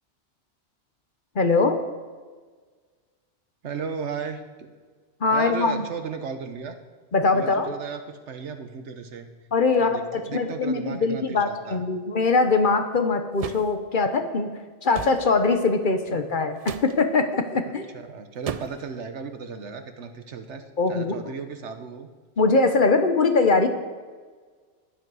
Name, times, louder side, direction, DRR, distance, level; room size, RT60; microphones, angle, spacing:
voice 1, 1.3-1.8 5.2-5.8 7.1-7.7 9.5-14.5 14.8-17.8 20.8-21.1 22.4-23.7, left 3 dB, 50° left, 7 dB, 1.1 m, -22 dB
voice 2, 3.6-4.7 5.3-6.8 7.3-9.3 9.8-11.8 16.1-16.4 17.9-22.1, right 5 dB, 85° right, 7 dB, 1.3 m, -35 dB
sound 1, 13.4-13.7 14.9-15.2 16.6-16.9 18.5-18.9, right 7 dB, 50° right, 0.4 m, -34 dB
14.5 x 10.5 x 4.8 m, 1.5 s
omnidirectional pair, 1.2 m